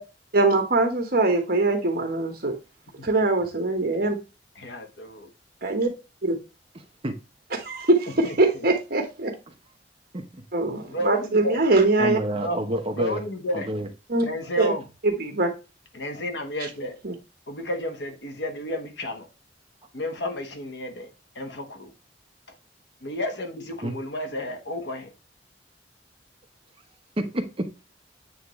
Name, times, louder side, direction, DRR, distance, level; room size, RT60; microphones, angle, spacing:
voice 1, 0.3-2.5 3.0-4.2 5.6-5.9 6.2-6.3 7.6-9.3 10.5-12.2 14.1-14.3 14.6-14.7 15.0-15.5 17.0-17.1, right 2 dB, 55° right, 1.4 m, -22 dB
voice 2, 4.5-5.3 8.2-8.7 10.9-11.6 12.3-12.6 12.9-13.7 14.2-14.9 15.9-17.0 17.5-19.3 19.9-21.9 23.0-25.1, equal, 75° left, 1.3 m, -32 dB
voice 3, 6.7-7.2 10.1-10.4 12.0-13.2 13.5-13.9 23.8-23.9 27.2-27.7, right 1 dB, 30° right, 0.9 m, -29 dB
8.6 x 3.6 x 3.1 m
head